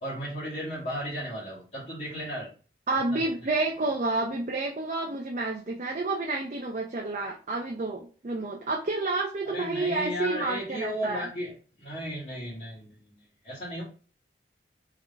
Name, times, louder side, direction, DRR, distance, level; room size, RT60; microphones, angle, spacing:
voice 1, 0.0-2.5 3.1-3.3 9.5-11.5 11.8-13.2 13.4-13.8, equal, 40° left, -10 dB, 1.8 m, -35 dB
voice 2, 2.9-11.3, right 2 dB, 40° right, 0 dB, 0.6 m, -30 dB
3.6 x 3.3 x 3.3 m, 0.38 s
head